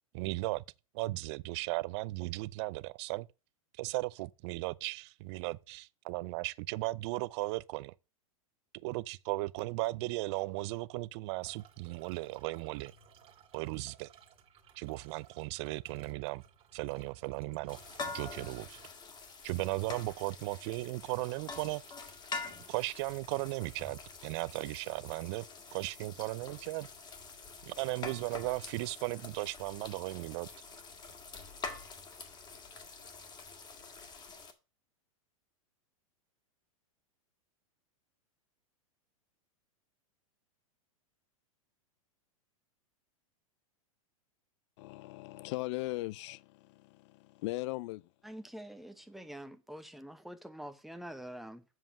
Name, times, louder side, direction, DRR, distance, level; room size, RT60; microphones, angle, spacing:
voice 1, 0.1-0.6 0.9-3.3 3.8-7.9 8.8-12.9 13.5-14.1 14.8-16.4 16.7-17.8 18.1-18.8 19.4-21.8 22.7-25.4 25.7-26.9 27.7-30.5, right 21 dB, 50° right, 0.4 m, -36 dB
sound 1, 11.4-18.9, right 7 dB, 30° right, 1.9 m, -60 dB
sound 2, 17.7-34.5, left 4 dB, 25° left, 1.9 m, -46 dB
voice 2, 44.8-48.0, left 20 dB, 55° left, 0.4 m, -39 dB
voice 3, 48.2-51.6, right 1 dB, ahead, 1.0 m, -46 dB
7.5 x 5.3 x 7.4 m
hypercardioid pair, 115°, 18 cm